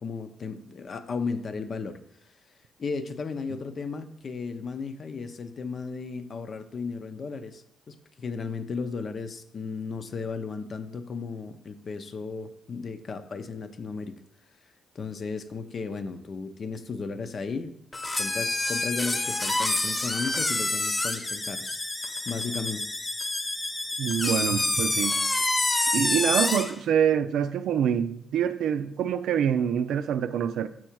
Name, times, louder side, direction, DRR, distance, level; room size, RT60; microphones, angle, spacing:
voice 1, 0.0-2.0 2.8-14.1 14.9-17.7 18.2-21.8 22.3-22.9, left 4 dB, 50° left, 0.7 m, -35 dB
sound 1, 17.9-26.8, left 2 dB, 25° left, 1.0 m, -27 dB
voice 2, 24.0-25.2 25.9-30.7, right 8 dB, 65° right, 0.5 m, -25 dB
6.4 x 5.9 x 4.6 m
hypercardioid pair, 45°, 0 cm